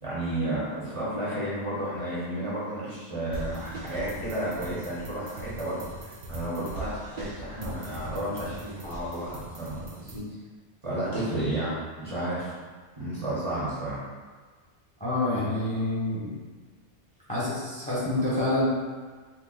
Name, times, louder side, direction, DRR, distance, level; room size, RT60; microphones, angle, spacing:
voice 1, 0.0-10.2 10.8-12.5 13.0-14.0, right 1 dB, 35° right, -10 dB, 0.8 m, -32 dB
sound 1, 3.3-10.2, right 1 dB, 55° right, 0.5 m, -40 dB
voice 2, 15.0-16.3 17.3-18.6, left 2 dB, 10° left, -9 dB, 0.7 m, -27 dB
2.8 x 2.3 x 3.7 m, 1.4 s
omnidirectional pair, 1.1 m